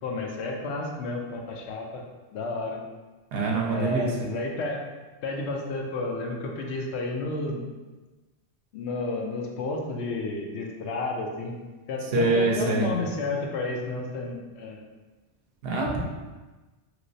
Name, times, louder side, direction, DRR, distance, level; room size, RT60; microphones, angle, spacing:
voice 1, 0.0-2.0 2.3-2.8 3.7-4.8 5.2-7.6 8.7-11.5 11.9-14.8, left 2 dB, 80° left, 1 dB, 0.8 m, -31 dB
voice 2, 3.3-4.1 12.1-12.9 15.6-16.0, right 3 dB, 65° right, -2 dB, 0.8 m, -24 dB
3.1 x 2.9 x 2.6 m, 1.2 s
omnidirectional pair, 1.1 m